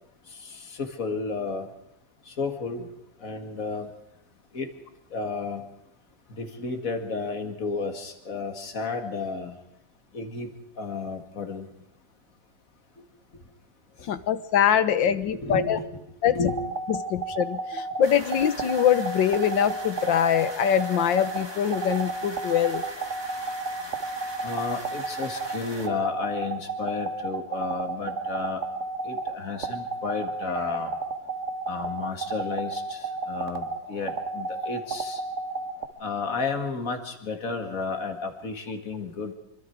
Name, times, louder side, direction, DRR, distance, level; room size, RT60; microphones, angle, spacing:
voice 1, 0.3-1.7 2.3-2.9 3.2-3.9 4.5-4.7 5.1-5.6 6.3-9.6 10.1-10.5 10.8-11.7 14.0-14.1 15.1-15.9 16.2-16.6 24.4-28.6 29.0-31.0 31.7-35.2 36.0-39.3, left 4 dB, 45° left, 6 dB, 2.5 m, -32 dB
voice 2, 14.1-15.8 16.2-16.4 16.9-22.8, left 9 dB, 75° left, 13 dB, 1.7 m, -23 dB
sound 1, 16.5-35.9, right 3 dB, 45° right, 1.4 m, -32 dB
sound 2, 18.0-25.9, right 1 dB, 15° right, 1.7 m, -42 dB
26.0 x 24.0 x 4.8 m, 0.79 s
omnidirectional pair, 2.1 m